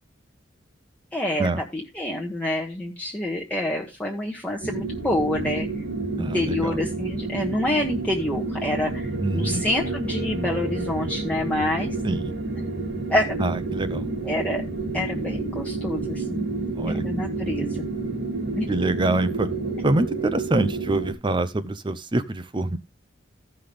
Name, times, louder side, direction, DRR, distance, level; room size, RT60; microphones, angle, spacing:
voice 1, 1.1-5.7 6.2-11.9 13.1-13.4 14.2-14.6 14.9-16.5 16.8-17.8 18.6-18.7, left 1 dB, 5° left, 1.2 m, -27 dB
sound 1, 4.6-21.1, right 3 dB, 70° right, 2.4 m, -29 dB
voice 2, 6.2-6.8 9.2-9.7 12.0-12.3 13.4-14.1 16.7-17.0 18.7-19.5 19.8-22.8, right 2 dB, 25° right, 0.6 m, -25 dB
15.5 x 5.8 x 3.4 m
head